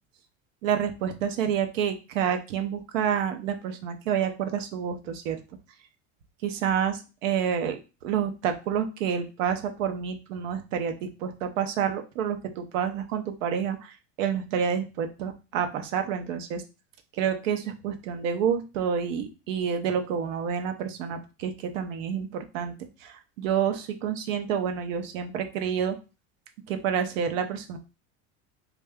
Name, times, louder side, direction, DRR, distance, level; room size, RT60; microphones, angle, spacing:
voice 1, 0.6-5.4 6.4-7.8 8.0-16.6 17.1-26.0 26.7-27.8, right 8 dB, 85° right, 7 dB, 0.8 m, -29 dB
3.3 x 2.5 x 3.5 m, 0.30 s
supercardioid pair, 125°, 37 cm